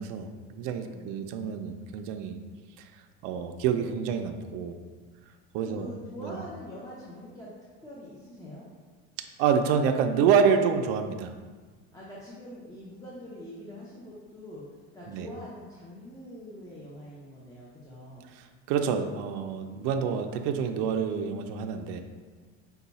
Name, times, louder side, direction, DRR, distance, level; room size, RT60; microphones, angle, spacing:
voice 1, 0.0-2.4 3.2-4.8 5.5-5.9 6.2-6.3 9.4-11.3 15.1-15.3 18.7-22.0, right 7 dB, 60° right, 6 dB, 0.5 m, -27 dB
voice 2, 0.8-1.4 5.6-7.5 7.8-8.6 11.9-14.6 14.9-18.3, equal, 10° left, -7 dB, 0.6 m, -44 dB
5.5 x 2.3 x 4.0 m, 1.4 s
supercardioid pair, 135°, 32 cm